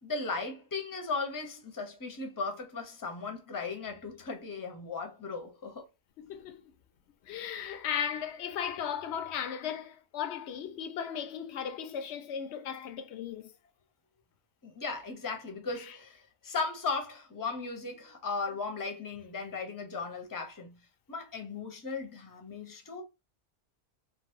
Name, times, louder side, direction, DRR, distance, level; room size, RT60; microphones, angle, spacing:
voice 1, 0.0-5.9 14.6-16.2 16.4-20.8 21.1-23.0, left 4 dB, 20° left, 0.6 m, -37 dB
voice 2, 6.2-6.6 7.2-13.5 15.8-15.9, left 8 dB, 90° left, 0.9 m, -36 dB
3.2 x 2.4 x 2.6 m
omnidirectional pair, 1.1 m